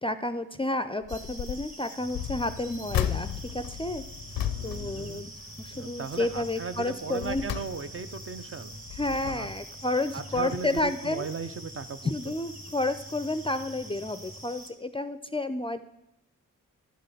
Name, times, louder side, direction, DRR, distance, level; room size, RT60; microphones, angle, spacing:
voice 1, 0.0-3.3 3.5-4.0 4.6-7.4 9.0-11.3 12.0-15.8, left 2 dB, 15° left, 11 dB, 0.4 m, -31 dB
sound 1, 1.0-1.7 2.1-5.8 6.1-6.5 7.0-8.2 8.7-9.7 10.4-10.5 10.8-10.9, left 11 dB, 85° left, 0.5 m, -35 dB
sound 2, 1.1-14.7, right 1 dB, 25° right, 1.6 m, -46 dB
sound 3, 2.0-14.4, equal, 70° right, 2.9 m, -48 dB
voice 2, 4.5-5.2 5.7-8.7 9.3-9.5 10.1-12.3, right 5 dB, 40° right, 10 dB, 0.6 m, -37 dB
11.5 x 3.8 x 6.6 m, 0.92 s
cardioid pair, 50°, 33 cm